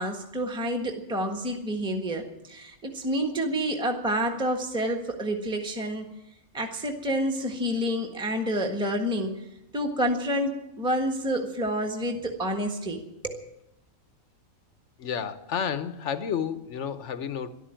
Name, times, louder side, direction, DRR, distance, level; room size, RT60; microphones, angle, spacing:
voice 1, 0.0-6.1 6.5-9.4 9.7-13.4, equal, 5° right, 3 dB, 1.4 m, -29 dB
voice 2, 15.0-17.5, left 7 dB, 60° left, 12 dB, 1.2 m, -31 dB
13.5 x 12.0 x 8.9 m, 0.88 s
omnidirectional pair, 1.5 m